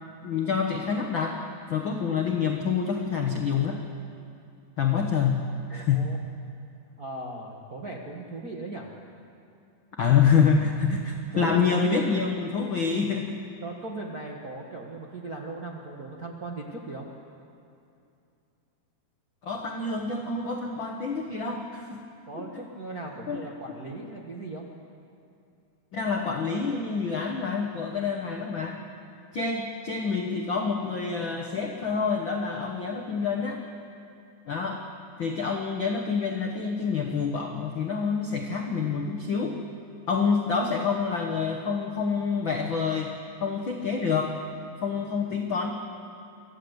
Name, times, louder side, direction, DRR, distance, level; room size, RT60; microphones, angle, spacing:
voice 1, 0.2-1.4 1.7-3.8 4.8-5.4 5.7-6.1 9.9-13.4 19.4-22.0 22.3-22.5 23.3-23.4 25.9-28.8 29.3-33.6 34.5-34.8 35.2-39.6 40.1-43.1 43.4-44.4 44.8-45.7, left 5 dB, 75° left, 1 dB, 1.1 m, -27 dB
voice 2, 5.7-6.2 7.0-8.9 11.3-11.8 13.6-17.1 22.3-24.7, right 2 dB, 65° right, -2 dB, 0.9 m, -38 dB
25.5 x 15.0 x 8.1 m, 2.6 s
omnidirectional pair, 4.3 m